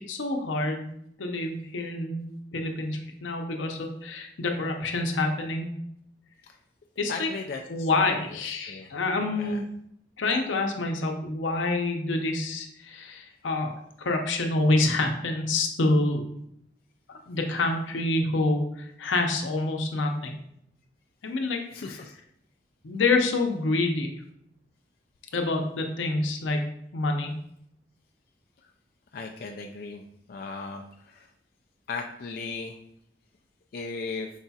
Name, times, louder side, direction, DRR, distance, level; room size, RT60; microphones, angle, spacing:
voice 1, 0.1-0.9 1.2-5.7 7.0-7.3 7.7-9.6 10.2-13.7 14.0-16.3 17.3-20.3 21.2-21.6 22.8-24.1 25.3-27.4, left 2 dB, 85° left, 3 dB, 0.7 m, -27 dB
voice 2, 7.1-8.4 8.7-8.9 9.3-9.6 21.7-22.1 29.1-30.0 30.3-31.3 31.9-32.8 33.7-34.3, left 4 dB, 50° left, 2 dB, 0.3 m, -37 dB
4.8 x 2.3 x 4.1 m, 0.73 s
head